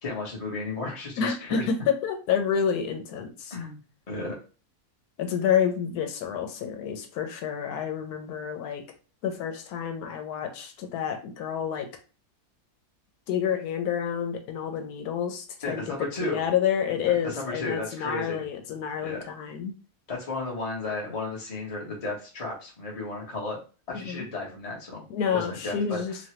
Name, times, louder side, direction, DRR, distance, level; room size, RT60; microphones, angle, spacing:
voice 1, 0.0-1.7 3.5-3.8 4.1-4.3 15.6-16.4 17.1-18.4 19.0-19.2 20.1-23.6 23.9-25.0 25.3-26.0, left 2 dB, 30° left, -2 dB, 0.9 m, -34 dB
voice 2, 1.2-3.5 5.2-8.8 9.2-11.9 13.3-19.7 23.9-24.2 25.1-26.2, left 8 dB, 90° left, 5 dB, 1.2 m, -29 dB
3.1 x 2.2 x 2.9 m, 0.35 s
omnidirectional pair, 1.6 m